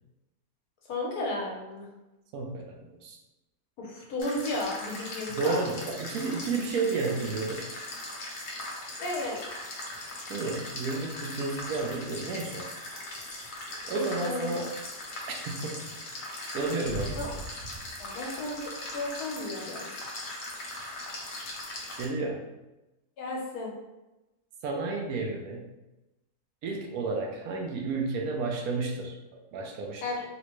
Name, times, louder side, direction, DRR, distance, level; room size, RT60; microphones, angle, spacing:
voice 1, 0.9-1.9 3.8-5.6 9.0-9.4 13.9-14.5 17.2-17.3 18.0-19.9 23.2-23.7 30.0-30.2, left 2 dB, 80° left, -2 dB, 1.3 m, -34 dB
voice 2, 2.3-3.2 5.3-7.7 10.3-12.7 13.8-14.7 15.4-15.9 16.5-17.4 22.0-22.4 24.6-25.7 26.6-30.0, right 3 dB, 75° right, 1 dB, 1.0 m, -32 dB
sound 1, 4.2-22.1, left 1 dB, 65° left, 1.1 m, -39 dB
4.0 x 2.1 x 3.0 m, 1.0 s
omnidirectional pair, 1.6 m